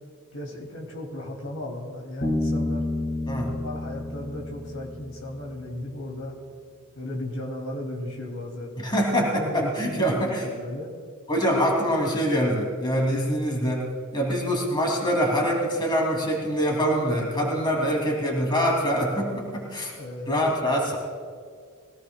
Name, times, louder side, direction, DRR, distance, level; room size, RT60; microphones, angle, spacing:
voice 1, 0.3-2.8 3.5-6.3 6.9-8.7 9.1-10.9 20.0-20.4, left 1 dB, 75° left, -1 dB, 2.7 m, -35 dB
Bass guitar, 2.2-5.7, left 2 dB, 60° left, 3.8 m, -30 dB
voice 2, 8.8-10.5 11.3-13.9 14.1-19.9 20.3-21.0, equal, 20° left, -1 dB, 2.8 m, -24 dB
22.0 x 17.0 x 2.3 m, 2.1 s
head